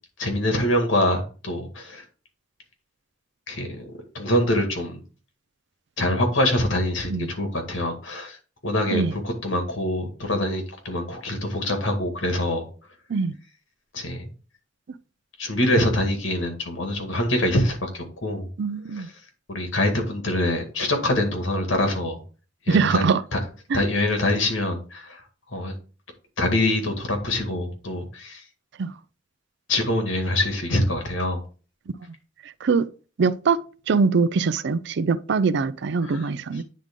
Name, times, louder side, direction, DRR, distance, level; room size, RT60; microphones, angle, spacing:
voice 1, 0.2-2.0 3.5-3.8 4.1-5.0 6.0-8.4 8.6-12.7 13.9-14.3 15.4-18.5 19.5-22.2 22.7-23.4 23.7-25.2 25.5-25.7 26.4-28.4 29.7-31.4 36.0-36.3, left 1 dB, 85° left, 2.0 m, -24 dB
voice 2, 18.6-19.1 22.7-23.2 23.7-23.8 28.8-28.9 32.6-32.9 33.2-36.6, right 5 dB, 65° right, 0.4 m, -22 dB
9.5 x 3.7 x 3.6 m
head